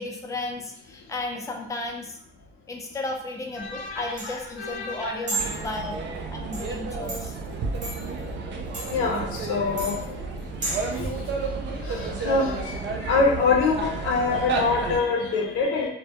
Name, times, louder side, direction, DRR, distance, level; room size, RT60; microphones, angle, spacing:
voice 1, 0.0-2.2 2.7-6.0 6.3-7.4, left 2 dB, 15° left, 1 dB, 0.4 m, -34 dB
voice 2, 3.6-4.3 4.6-5.6 8.9-10.1 11.0-11.1 11.8-15.9, left 4 dB, 85° left, 1 dB, 0.5 m, -25 dB
sound 1, 3.6-11.0, right 2 dB, 40° right, 1.0 m, -36 dB
sound 2, 5.4-15.0, right 4 dB, 65° right, 0.4 m, -32 dB
2.1 x 2.1 x 2.8 m, 0.70 s
cardioid pair, 90°, 20 cm